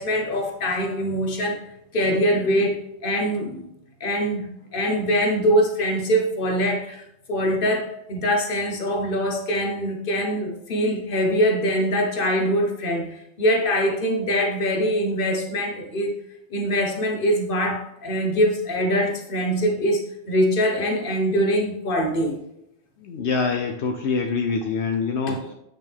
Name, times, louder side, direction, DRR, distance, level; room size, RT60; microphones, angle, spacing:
voice 1, 0.0-1.6 1.9-3.6 4.0-16.1 16.5-22.4 25.3-25.4, equal, 50° left, 2 dB, 1.4 m, -23 dB
voice 2, 23.0-25.5, left 4 dB, 75° left, 4 dB, 0.9 m, -25 dB
8.5 x 5.8 x 3.5 m, 0.82 s
omnidirectional pair, 1.1 m